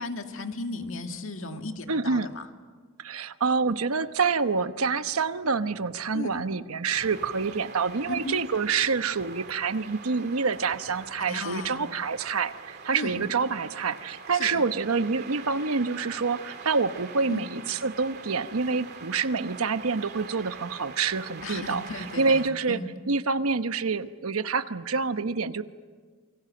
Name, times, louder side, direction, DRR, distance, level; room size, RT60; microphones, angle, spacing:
voice 1, 0.0-2.5 6.1-6.5 8.1-8.4 11.3-11.8 12.9-13.2 14.3-14.6 17.3-17.5 21.4-22.9, left 2 dB, 65° left, 5 dB, 2.2 m, -35 dB
voice 2, 1.9-2.3 3.0-21.8 22.2-22.8 23.1-25.6, right 4 dB, 90° right, 10 dB, 1.0 m, -27 dB
sound 1, 6.9-22.5, right 5 dB, 50° right, 2.8 m, -43 dB
28.5 x 24.5 x 7.8 m, 1.5 s
head